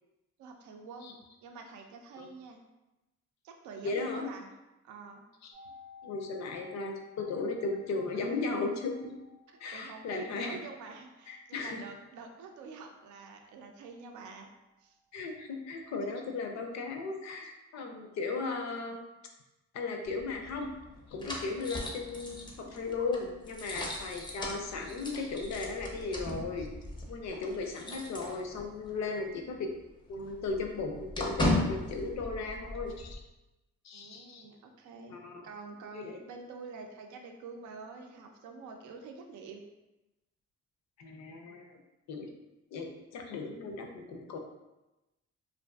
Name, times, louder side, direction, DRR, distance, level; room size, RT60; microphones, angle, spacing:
voice 1, 0.4-2.6 3.4-4.5 4.8-5.2 9.5-14.5 14.8-15.0 33.9-35.2 35.4-39.6, right 4 dB, 75° right, 3 dB, 0.5 m, -47 dB
voice 2, 3.8-4.3 5.4-5.5 6.0-9.1 9.6-10.6 11.3-11.8 15.1-19.0 19.7-20.7 21.1-26.7 27.1-29.7 30.1-33.2 33.8-34.4 35.1-35.4 35.9-36.2 41.0-41.8 42.1-42.3 42.7-44.4, left 3 dB, 65° left, 3 dB, 0.5 m, -36 dB
sound 1, 5.5-15.3 15.5-15.6, left 5 dB, 25° right, 0.6 m, -57 dB
sound 2, 20.1-28.9 29.2-29.3 29.7-33.2, left 1 dB, 15° left, 0.5 m, -37 dB
2.5 x 2.5 x 2.3 m, 1.0 s
cardioid pair, 90°, 30 cm